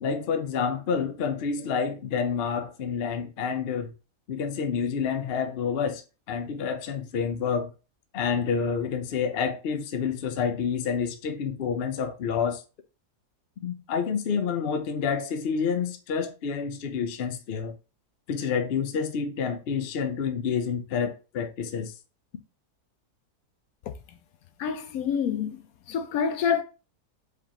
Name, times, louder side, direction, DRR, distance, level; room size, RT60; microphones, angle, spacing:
voice 1, 0.0-3.9 4.3-6.0 6.3-7.7 8.1-12.6 13.6-17.7 18.3-21.9, left 6 dB, 55° left, 0.7 m, -28 dB
voice 2, 24.6-25.6 25.9-26.6, left 7 dB, 70° left, 1.0 m, -27 dB
4.9 x 3.5 x 2.9 m
omnidirectional pair, 1.6 m